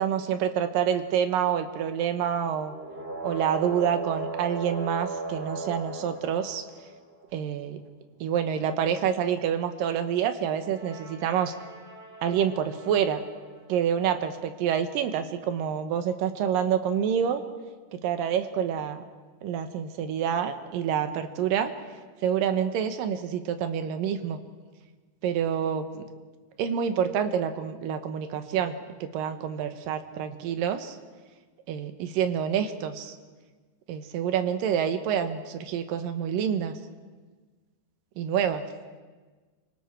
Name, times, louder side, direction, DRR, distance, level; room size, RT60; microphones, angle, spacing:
voice 1, 0.0-2.7 3.2-6.6 7.3-7.8 8.2-11.5 12.2-13.2 13.7-17.4 17.9-19.0 19.4-21.7 22.2-24.4 25.2-25.9 26.6-31.0 31.7-33.2 33.9-36.8 38.2-38.6, right 8 dB, 70° right, 8 dB, 2.3 m, -27 dB
sound 1, 2.7-7.3 10.6-13.5, right 3 dB, 20° right, 1.6 m, -38 dB
29.0 x 25.5 x 4.5 m, 1.4 s
omnidirectional pair, 5.0 m